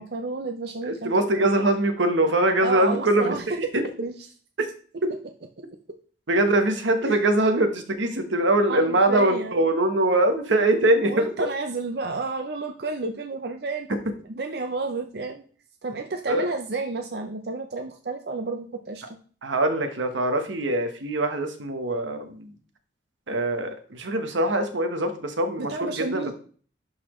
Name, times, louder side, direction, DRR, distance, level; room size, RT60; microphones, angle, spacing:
voice 1, 0.0-1.5 2.6-3.4 4.0-4.1 7.0-7.2 8.7-9.6 11.1-13.9 14.3-15.4 15.8-19.0 25.6-26.3, right 3 dB, 55° right, 4 dB, 0.6 m, -31 dB
voice 2, 0.9-3.5 6.3-11.5 16.3-16.5 19.4-22.5 23.3-26.3, right 1 dB, 85° right, 7 dB, 1.1 m, -23 dB
11.0 x 4.1 x 3.1 m, 0.43 s
head